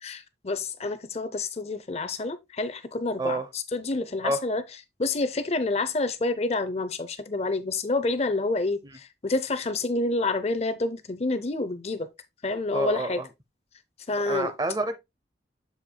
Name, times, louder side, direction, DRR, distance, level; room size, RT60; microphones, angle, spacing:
voice 1, 0.0-4.6 5.0-12.1 12.4-13.2 14.1-14.5, left 2 dB, 35° left, 0.6 m, -28 dB
voice 2, 12.7-13.3 14.3-15.0, right 1 dB, 20° right, 0.6 m, -28 dB
7.2 x 7.1 x 2.2 m
head